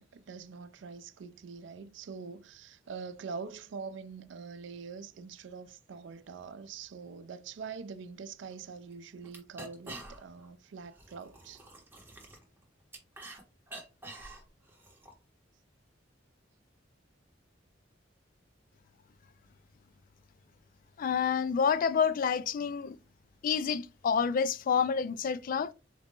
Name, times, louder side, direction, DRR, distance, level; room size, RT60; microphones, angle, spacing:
voice 1, 0.0-11.6, right 5 dB, 70° right, 0.4 m, -44 dB
sound 1, 8.5-8.6 8.9-9.0 9.2-10.5 10.8-13.4 13.7-15.1, right 2 dB, 10° right, 1.1 m, -47 dB
voice 2, 21.0-23.0 23.4-25.7, left 6 dB, 50° left, 0.3 m, -28 dB
4.2 x 2.4 x 3.5 m
head